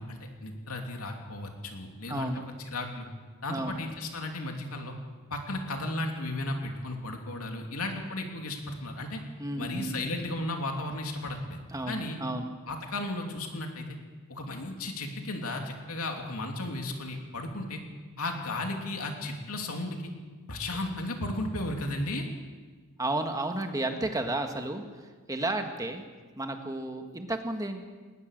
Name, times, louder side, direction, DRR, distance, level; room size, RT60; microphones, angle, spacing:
voice 1, 0.0-3.1 3.4-4.9 5.3-9.2 9.6-11.6 11.9-12.2 12.7-14.0 14.3-17.8 18.2-20.1 20.5-22.3, left 2 dB, 75° left, 2 dB, 3.0 m, -34 dB
voice 2, 2.1-2.4 3.5-3.8 9.4-10.0 11.7-12.5 23.0-26.0 26.4-27.8, right 2 dB, 15° right, 5 dB, 1.6 m, -32 dB
20.0 x 19.5 x 6.6 m, 1.4 s
head